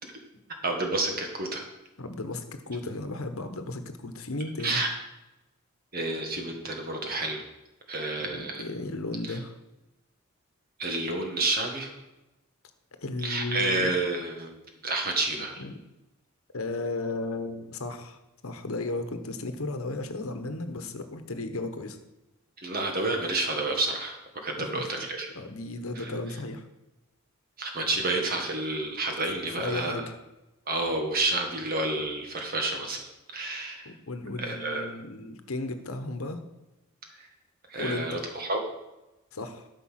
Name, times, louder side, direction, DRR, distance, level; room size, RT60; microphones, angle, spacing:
voice 1, 0.6-1.6 4.6-4.9 5.9-7.4 7.9-8.7 9.3-9.4 10.8-11.9 13.2-14.5 14.8-15.6 22.6-25.3 26.0-26.1 27.6-30.1 30.7-33.1 33.3-33.9 34.4-34.9 37.1-37.3 37.7-38.6, right 2 dB, 45° right, 2 dB, 1.8 m, -29 dB
voice 2, 2.0-4.8 8.2-9.5 13.0-13.9 15.6-15.8 16.5-22.0 24.6-24.8 25.3-26.7 29.5-30.1 33.8-36.4 37.8-38.2 39.3-39.7, left 2 dB, 80° left, 8 dB, 1.1 m, -35 dB
12.5 x 5.6 x 5.8 m, 1.0 s
head